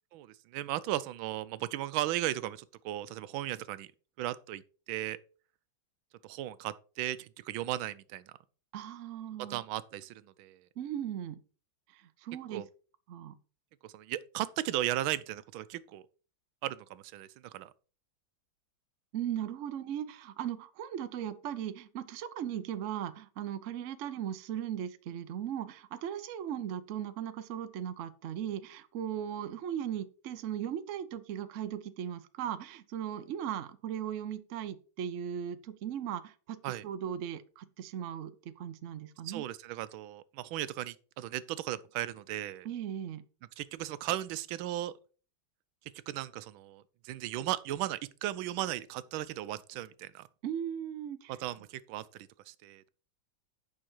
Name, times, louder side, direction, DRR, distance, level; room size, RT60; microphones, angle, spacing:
voice 1, 0.1-3.9 4.2-4.6 4.9-5.2 6.2-8.3 9.4-10.6 12.5-12.7 13.8-16.1 16.6-17.7 36.6-36.8 39.2-42.7 43.6-44.9 46.1-50.3 51.4-52.9, right 14 dB, 85° right, 1.4 m, -36 dB
voice 2, 8.7-9.6 10.8-11.4 11.9-12.6 13.1-13.3 19.1-39.4 42.6-43.2 50.4-51.3, right 9 dB, 65° right, 0.7 m, -38 dB
8.8 x 5.7 x 4.5 m
omnidirectional pair, 2.1 m